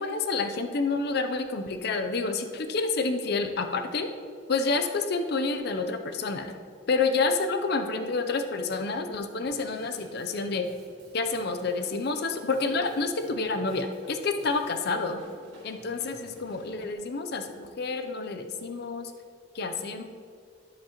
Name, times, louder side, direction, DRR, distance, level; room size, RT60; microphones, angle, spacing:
voice 1, 0.0-4.1 4.5-6.6 6.9-10.7 11.1-15.2 15.6-19.1 19.5-20.0, left 3 dB, 55° left, 7 dB, 0.6 m, -29 dB
Drum kit / Drum, 9.4-16.9, right 1 dB, 70° right, 2.1 m, -54 dB
10.0 x 7.2 x 3.0 m, 2.2 s
head